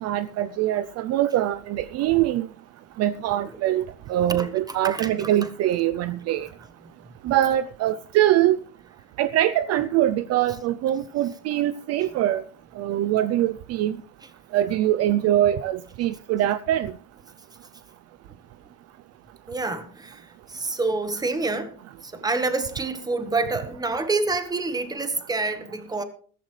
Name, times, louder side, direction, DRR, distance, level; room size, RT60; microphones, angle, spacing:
voice 1, 0.0-2.5 3.0-6.5 7.2-8.6 9.2-12.4 12.8-13.9 14.5-16.9, right 13 dB, 45° right, 0.5 m, -23 dB
voice 2, 4.3-5.5 12.0-12.1 14.2-14.3 19.5-26.0, right 3 dB, 10° right, 1.2 m, -28 dB
15.0 x 14.5 x 3.2 m
cardioid pair, 160°, 34 cm